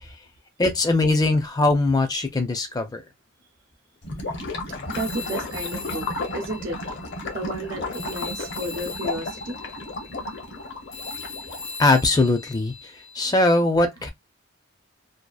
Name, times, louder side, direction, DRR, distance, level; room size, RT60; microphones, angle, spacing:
voice 1, 0.6-3.0 4.7-4.9 11.8-14.1, left 2 dB, 20° left, 0.4 m, -21 dB
Gurgling / Liquid, 4.0-11.8, left 2 dB, 55° left, 0.7 m, -33 dB
Telephone, 4.9-7.7 7.9-13.2, left 4 dB, 85° left, 0.9 m, -39 dB
voice 2, 4.9-6.8 7.3-9.6 13.2-13.3 14.0-14.1, right 1 dB, 75° right, 0.7 m, -33 dB
2.7 x 2.3 x 2.3 m
head